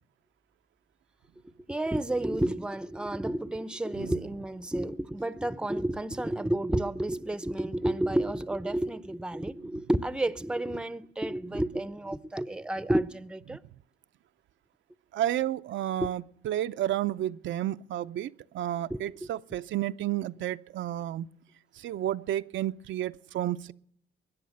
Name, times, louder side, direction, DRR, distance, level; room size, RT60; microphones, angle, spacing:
voice 1, 1.7-13.6 16.0-16.1 18.9-19.0, right 1 dB, 5° right, 0.7 m, -30 dB
voice 2, 15.1-21.3 21.8-23.7, right 12 dB, 70° right, 0.6 m, -31 dB
21.5 x 10.5 x 6.5 m
cardioid pair, 90°, 20 cm